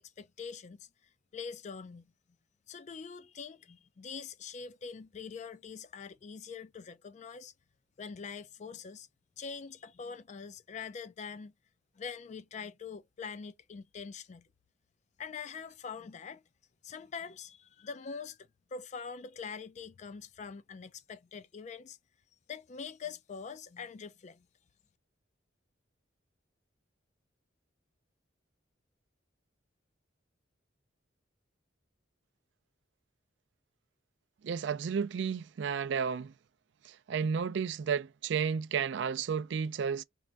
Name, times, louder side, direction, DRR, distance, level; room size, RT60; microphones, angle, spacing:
voice 1, 0.2-0.9 1.3-2.1 2.7-7.5 8.0-9.1 9.4-11.5 12.0-14.5 15.2-16.4 16.8-22.0 22.5-24.5, left 5 dB, 35° left, 0.3 m, -44 dB
voice 2, 34.4-36.3 36.9-40.0, right 6 dB, 65° right, 0.4 m, -32 dB
3.2 x 2.5 x 3.3 m
head